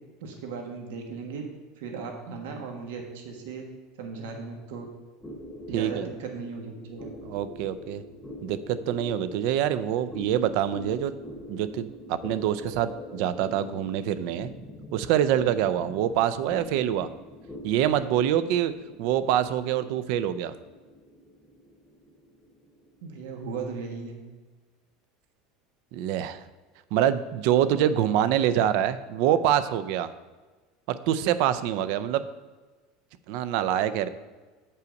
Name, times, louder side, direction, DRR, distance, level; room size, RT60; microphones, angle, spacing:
voice 1, 0.2-1.4 1.8-3.6 4.0-4.8 5.7-7.1 23.0-24.2, right 5 dB, 90° right, 3 dB, 1.4 m, -37 dB
sound 1, 5.2-24.0, equal, 10° left, 0.9 m, -44 dB
voice 2, 5.7-6.1 7.2-8.0 8.4-11.1 11.5-14.5 14.9-17.1 17.6-18.7 19.0-20.5 25.9-26.4 26.9-30.1 30.9-32.2 33.3-34.1, right 10 dB, 55° right, 13 dB, 0.4 m, -25 dB
8.2 x 5.5 x 5.1 m, 1.3 s
supercardioid pair, 170°, 0 cm